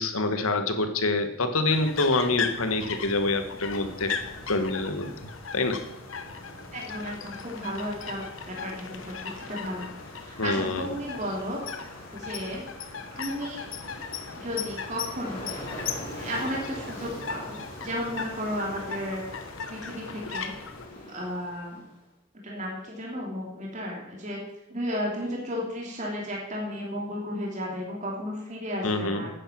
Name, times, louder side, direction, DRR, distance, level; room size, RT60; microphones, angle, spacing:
voice 1, 0.0-4.1 4.5-5.1 5.5-5.8 10.4-10.9 21.0-21.1 28.8-29.2, left 2 dB, 80° left, 8 dB, 1.4 m, -26 dB
sound 1, 1.7-20.9, left 6 dB, 60° left, 1.1 m, -38 dB
Ocean, 2.8-21.9, left 1 dB, 40° left, 4.1 m, -44 dB
voice 2, 6.7-9.9 10.2-11.6 12.1-13.7 14.4-15.5 16.1-19.2 19.7-20.5 21.1-21.8 22.4-24.4 24.7-29.3, equal, 35° right, -2 dB, 2.8 m, -34 dB
10.5 x 10.0 x 6.1 m, 0.89 s
head